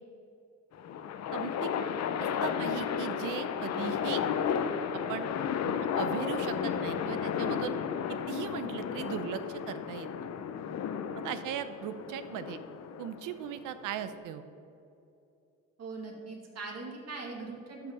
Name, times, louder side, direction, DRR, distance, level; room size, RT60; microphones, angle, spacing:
sound 1, 0.7-14.1, left 7 dB, 60° left, 0.7 m, -33 dB
voice 1, 1.3-1.8 2.2-4.2 5.1-5.3 5.6-7.8 8.1-10.1 11.2-12.6 13.0-14.4, right 9 dB, 90° right, 12 dB, 0.7 m, -38 dB
voice 2, 15.8-17.9, right 3 dB, 55° right, 0 dB, 2.3 m, -41 dB
12.0 x 5.6 x 5.4 m, 2.8 s
cardioid pair, 90°, 30 cm